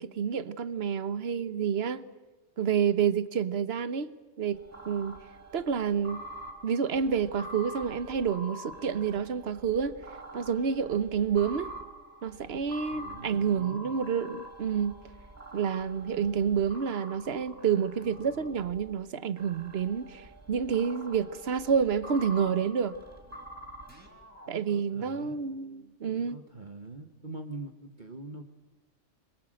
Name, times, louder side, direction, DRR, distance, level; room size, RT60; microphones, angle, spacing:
voice 1, 0.0-2.0 2.6-4.1 4.4-4.6 4.9-5.2 5.5-6.2 6.6-10.0 10.3-11.7 12.2-15.0 15.5-22.9 24.5-26.4, right 7 dB, 55° right, 1.2 m, -29 dB
sound 1, 4.5-18.9 19.4-24.5, right 1 dB, 10° right, 4.1 m, -46 dB
voice 2, 12.9-14.0 24.7-25.4 26.0-28.4, right 2 dB, 40° right, 1.4 m, -43 dB
26.5 x 22.5 x 7.8 m
omnidirectional pair, 1.3 m